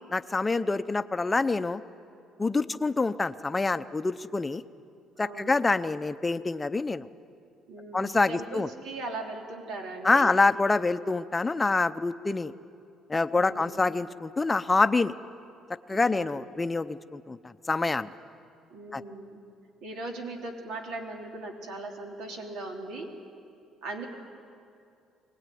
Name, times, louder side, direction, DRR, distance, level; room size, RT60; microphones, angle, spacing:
voice 1, 0.1-1.8 2.4-4.6 5.2-7.1 7.9-8.7 10.0-12.5 13.1-15.1 15.9-18.1 18.9-19.0, left 3 dB, 15° left, 11 dB, 0.6 m, -26 dB
voice 2, 5.2-5.5 7.7-10.3 13.3-13.8 15.9-16.5 18.7-19.4 19.8-23.1 23.8-24.1, right 2 dB, 80° right, 2 dB, 3.4 m, -39 dB
24.0 x 19.0 x 9.3 m, 2.5 s
cardioid pair, 125°, 0 cm